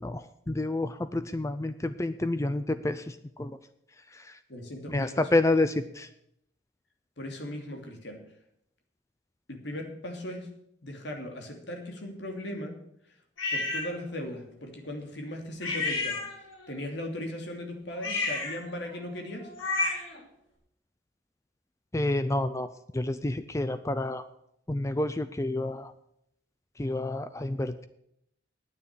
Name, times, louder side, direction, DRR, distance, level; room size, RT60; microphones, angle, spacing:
voice 1, 0.0-3.6 4.9-6.1 21.9-22.7 22.9-24.2 24.7-25.9 26.8-27.9, left 2 dB, 15° left, 11 dB, 0.5 m, -29 dB
voice 2, 4.5-5.4 7.2-8.2 9.5-10.5 10.8-12.8 13.5-16.2 16.7-19.5, left 1 dB, 65° left, 3 dB, 2.8 m, -38 dB
sound 1, 13.4-13.9 15.6-16.7 17.9-20.2, left 3 dB, 85° left, 6.4 m, -31 dB
9.9 x 9.3 x 8.3 m, 0.74 s
head